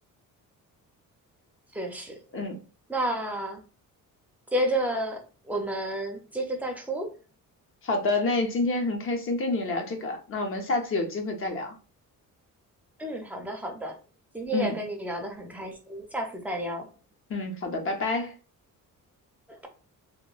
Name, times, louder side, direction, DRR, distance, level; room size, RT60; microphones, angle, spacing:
voice 1, 1.7-2.1 2.9-3.6 4.5-5.2 5.5-7.1 13.0-14.0 14.3-16.9 19.5-19.7, right 1 dB, 5° right, 0.5 m, -31 dB
voice 2, 7.8-11.8 14.5-14.8 17.3-18.3, left 2 dB, 40° left, 0.6 m, -28 dB
2.9 x 2.1 x 2.3 m
cardioid pair, 130°, 34 cm